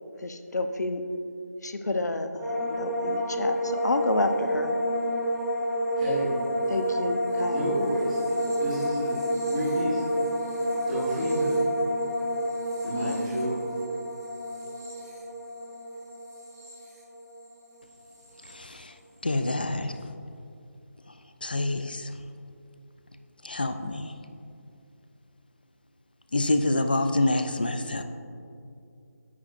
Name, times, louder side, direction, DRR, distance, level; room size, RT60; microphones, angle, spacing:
voice 1, 0.2-1.0 1.6-4.8 6.7-7.6, left 2 dB, 85° left, 8 dB, 0.8 m, -29 dB
sound 1, 2.4-17.6 17.9-18.5, equal, 10° right, 1.5 m, -29 dB
voice 2, 6.0-6.4 7.5-10.2 10.8-11.7 12.8-13.6, right 1 dB, 25° right, -10 dB, 1.5 m, -31 dB
voice 3, 18.4-19.0 19.2-20.0 21.1-21.2 21.4-22.2 23.4-24.1 26.3-28.0, left 2 dB, 35° left, 8 dB, 0.4 m, -27 dB
9.5 x 9.0 x 2.5 m, 2.6 s
figure-of-eight pair, 180°, 9 cm